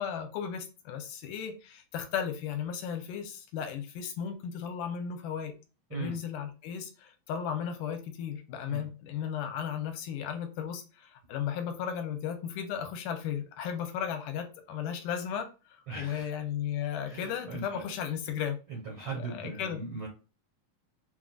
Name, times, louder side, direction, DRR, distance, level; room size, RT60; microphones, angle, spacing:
voice 1, 0.0-5.5 5.9-18.6 19.1-19.8, left 8 dB, 80° left, 6 dB, 2.1 m, -35 dB
voice 2, 15.9-16.3 17.1-17.8 18.7-20.1, right 4 dB, 65° right, -2 dB, 1.3 m, -39 dB
5.9 x 2.5 x 2.4 m, 0.32 s
omnidirectional pair, 3.9 m